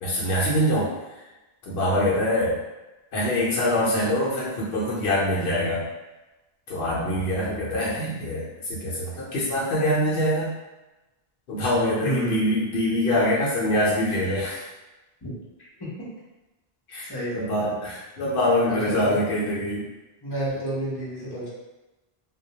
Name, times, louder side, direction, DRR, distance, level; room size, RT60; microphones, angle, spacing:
voice 1, 0.0-1.2 1.6-2.6 3.1-5.9 6.7-10.5 11.5-14.7 16.9-19.9, left 1 dB, 70° left, -7 dB, 0.8 m, -24 dB
voice 2, 12.0-12.3 15.2-15.3 15.8-15.9 17.1-17.7 18.6-19.2 20.2-21.5, right 1 dB, 30° left, -7 dB, 0.6 m, -30 dB
2.2 x 2.1 x 2.7 m, 1.1 s
omnidirectional pair, 1.0 m